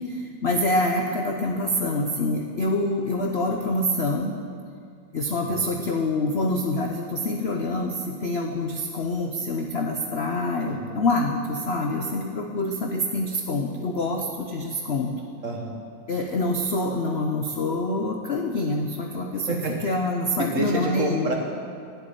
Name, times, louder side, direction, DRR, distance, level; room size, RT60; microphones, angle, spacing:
voice 1, 0.1-4.4 5.1-15.1 16.1-19.5 19.8-21.3, left 2 dB, 55° left, 2 dB, 0.7 m, -26 dB
voice 2, 10.6-11.0 15.4-15.8 19.5-19.7 20.4-21.3, right 2 dB, 45° right, 1 dB, 1.6 m, -28 dB
11.0 x 8.3 x 9.1 m, 2.2 s
omnidirectional pair, 2.1 m